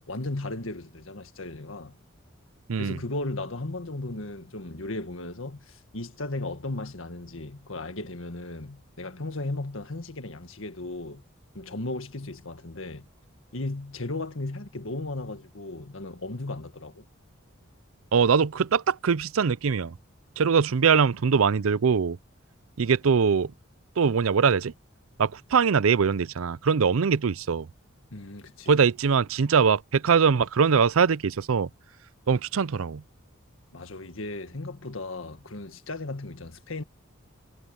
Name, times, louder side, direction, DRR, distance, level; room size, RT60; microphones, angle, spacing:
voice 1, 0.0-2.0 2.8-11.2 11.5-13.1 13.5-17.0 28.1-28.7 33.7-36.8, left 2 dB, 70° left, 1.7 m, -35 dB
voice 2, 18.1-19.9 20.4-22.2 22.8-23.5 24.0-24.7 25.2-27.7 28.7-31.7 32.3-33.0, right 6 dB, 80° right, 0.5 m, -22 dB
head